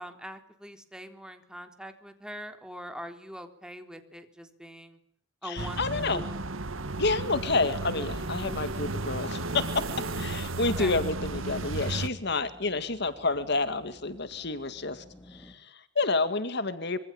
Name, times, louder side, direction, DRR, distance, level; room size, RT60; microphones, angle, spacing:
voice 1, 0.0-5.0 5.4-6.4 10.7-10.9, equal, 5° right, 7 dB, 3.7 m, -43 dB
voice 2, 5.4-6.3 7.0-17.0, left 3 dB, 55° left, 11 dB, 2.1 m, -29 dB
sound 1, 5.6-12.1, right 2 dB, 85° right, 2.0 m, -34 dB
sound 2, 9.4-15.5, left 1 dB, 10° left, 5.2 m, -54 dB
26.5 x 25.0 x 8.9 m, 0.65 s
head